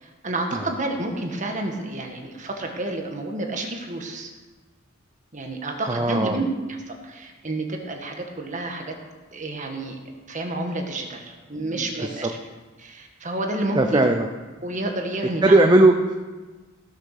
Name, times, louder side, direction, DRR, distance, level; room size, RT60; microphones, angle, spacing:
voice 1, 0.0-4.3 5.3-6.4 6.9-8.9 9.3-9.9 10.3-12.3 12.8-14.1 14.6-15.6, right 2 dB, 40° right, 3 dB, 1.6 m, -30 dB
voice 2, 5.9-6.4 11.6-12.3 13.7-14.3 15.4-16.1, right 2 dB, 20° right, 5 dB, 0.6 m, -19 dB
15.5 x 6.8 x 6.6 m, 1.3 s
head